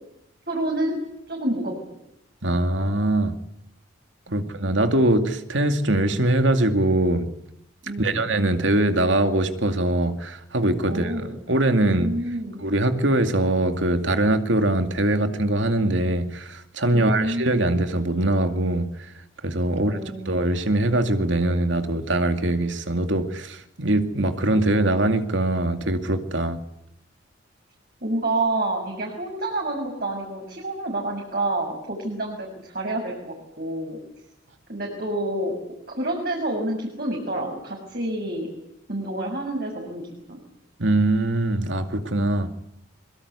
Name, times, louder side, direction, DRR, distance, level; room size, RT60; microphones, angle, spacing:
voice 1, 0.5-1.0 1.3-2.0 4.3-4.4 7.9-8.2 10.9-11.4 11.9-12.6 16.9-17.7 19.7-20.5 28.0-34.0 34.7-35.6 36.0-38.5 38.9-40.0 40.3-40.4, right 1 dB, 50° right, 0 dB, 6.3 m, -28 dB
voice 2, 2.4-3.3 4.3-7.3 8.0-12.1 12.6-19.1 19.4-26.6 40.8-42.5, right 1 dB, 75° right, 8 dB, 2.3 m, -22 dB
24.0 x 23.0 x 8.3 m, 0.82 s
head